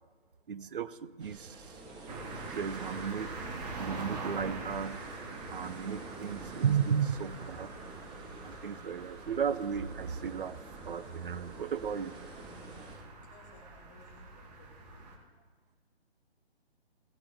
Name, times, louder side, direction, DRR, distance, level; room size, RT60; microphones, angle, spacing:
voice 1, 0.5-1.6 2.5-3.4 3.8-5.0 5.5-7.8 8.4-10.6 10.9-12.2, right 7 dB, 55° right, 15 dB, 0.7 m, -34 dB
sound 1, 1.2-13.0, right 2 dB, 15° right, 1.5 m, -48 dB
sound 2, 2.1-15.2, right 3 dB, 40° right, 1.9 m, -44 dB
voice 2, 13.2-15.1, left 3 dB, 5° left, 0 dB, 0.5 m, -60 dB
16.5 x 8.6 x 3.6 m, 1.5 s
figure-of-eight pair, 145°, 33 cm